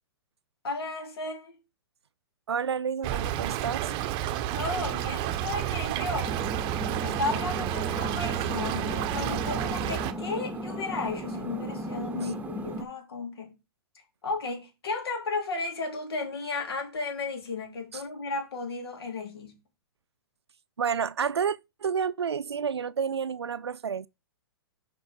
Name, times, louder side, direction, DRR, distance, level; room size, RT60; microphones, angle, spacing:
voice 1, 0.6-1.6 4.5-6.3 7.0-13.5 14.2-19.6, left 3 dB, 70° left, 3.2 m, -34 dB
voice 2, 2.5-3.9 12.2-12.3 17.9-18.0 20.8-24.1, right 7 dB, 90° right, 0.4 m, -30 dB
Stream / Trickle dribble, 3.0-10.1, right 12 dB, 35° right, 0.8 m, -30 dB
sound 1, 6.3-12.8, right 1 dB, 10° right, 1.2 m, -35 dB
6.3 x 5.3 x 4.9 m
hypercardioid pair, 115°, 13 cm